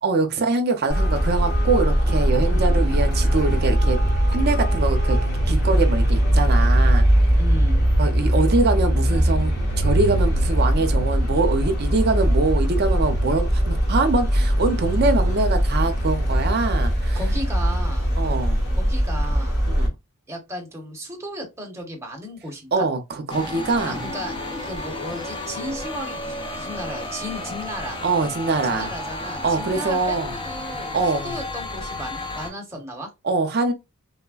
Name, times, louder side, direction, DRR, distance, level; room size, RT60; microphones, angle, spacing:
voice 1, 0.0-4.0 4.3-5.2 5.5-7.0 8.0-17.2 18.2-18.6 19.7-19.9 22.7-24.1 28.0-28.9 29.4-30.3 30.9-31.4 33.2-33.7, right 3 dB, 45° right, 0.5 m, -23 dB
Traffic noise roadway noise, 0.9-19.9, equal, 45° left, 1.3 m, -20 dB
voice 2, 2.4-2.8 7.4-7.8 17.1-18.1 18.8-19.6 20.3-22.8 23.8-24.3 24.6-28.0 28.7-33.1, equal, 10° right, 0.8 m, -35 dB
sound 1, 23.3-32.5, left 2 dB, 20° left, 0.5 m, -32 dB
3.3 x 2.1 x 2.2 m
head